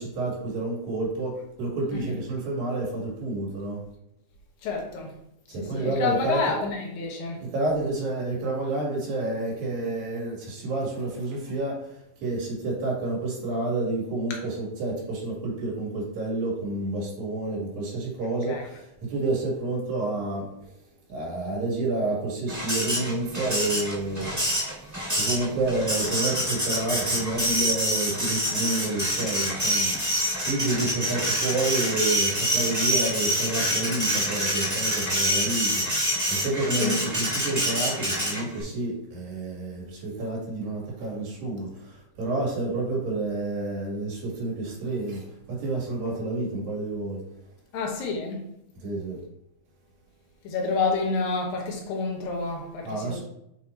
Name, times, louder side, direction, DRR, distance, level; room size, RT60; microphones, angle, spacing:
voice 1, 0.0-3.8 5.5-6.4 7.4-11.8 12.2-20.5 21.1-24.3 25.2-30.0 30.5-35.8 36.3-41.7 42.2-45.2 45.5-47.2 48.8-49.2 52.8-53.2, right 2 dB, 75° right, -4 dB, 3.8 m, -29 dB
voice 2, 4.6-5.1 5.6-7.4 18.5-18.6 36.8-36.9 47.7-48.4 50.4-53.2, left 4 dB, 80° left, 0 dB, 2.9 m, -29 dB
Printer, 22.5-38.6, equal, 5° right, 1.3 m, -26 dB
8.1 x 2.9 x 4.3 m, 0.82 s
omnidirectional pair, 4.1 m